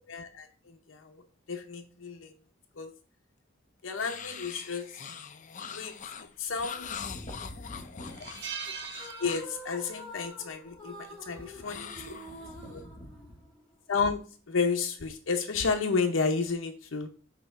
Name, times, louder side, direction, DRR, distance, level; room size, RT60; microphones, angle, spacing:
voice 1, 0.1-1.2 1.5-2.3 2.8-2.9 3.8-4.9 5.7-5.9 6.4-7.0 9.2-12.1 13.9-14.2 14.5-17.1, left 4 dB, 80° left, 5 dB, 0.7 m, -31 dB
sound 1, 4.0-9.6 11.6-12.8, left 7 dB, 40° left, 0.5 m, -43 dB
sound 2, 6.8-7.2 7.5-7.6 8.0-9.9 10.1-10.4 11.6-11.9, right 7 dB, 60° right, 0.9 m, -41 dB
voice 2, 7.0-8.3 11.4-12.1 12.4-13.4, left 1 dB, 25° left, 3 dB, 1.6 m, -46 dB
sound 3, 8.9-13.7, equal, 5° left, 1.4 m, -47 dB
6.4 x 2.9 x 5.7 m, 0.40 s
head